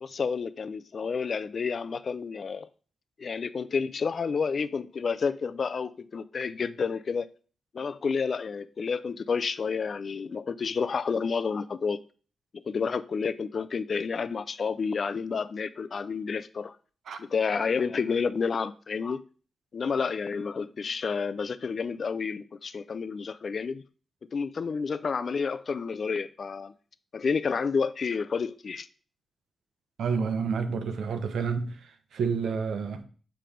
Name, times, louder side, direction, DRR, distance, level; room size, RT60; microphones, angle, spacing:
voice 1, 0.0-2.7 3.2-7.3 7.7-12.0 12.5-16.8 17.2-19.2 19.7-23.8 24.3-26.7 27.1-28.9, left 5 dB, 50° left, 0.4 m, -30 dB
voice 2, 30.0-31.7 32.1-33.0, right 5 dB, 85° right, 0.8 m, -29 dB
7.7 x 3.3 x 5.0 m
wide cardioid pair, 110°, 0 cm